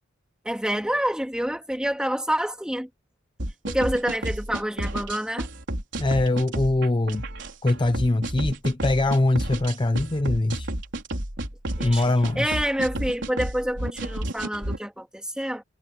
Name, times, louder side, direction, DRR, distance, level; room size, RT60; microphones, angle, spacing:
voice 1, 0.5-2.9 3.7-5.5 11.8-12.0 12.4-15.6, equal, 5° right, 3.4 m, -27 dB
sound 1, 3.4-14.8, right 1 dB, 60° right, 4.1 m, -31 dB
voice 2, 6.0-7.3 7.6-10.7 11.8-12.6, left 2 dB, 25° left, 0.6 m, -23 dB
head